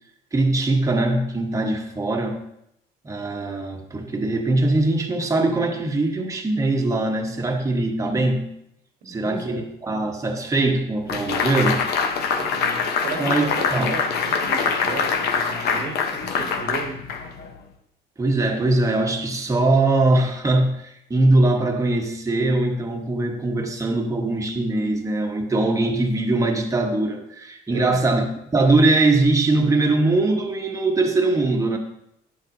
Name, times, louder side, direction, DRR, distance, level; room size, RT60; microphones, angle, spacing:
voice 1, 0.3-2.4 3.0-8.5 9.1-11.8 13.2-13.9 18.2-28.3 28.5-31.8, right 2 dB, 20° right, 2 dB, 1.2 m, -21 dB
voice 2, 9.0-9.7 12.3-17.1 27.7-28.0, right 4 dB, 85° right, 2 dB, 1.4 m, -34 dB
sound 1, 11.1-17.6, left 5 dB, 70° left, 1.0 m, -24 dB
10.0 x 7.3 x 2.7 m, 0.78 s
cardioid pair, 110°, 17 cm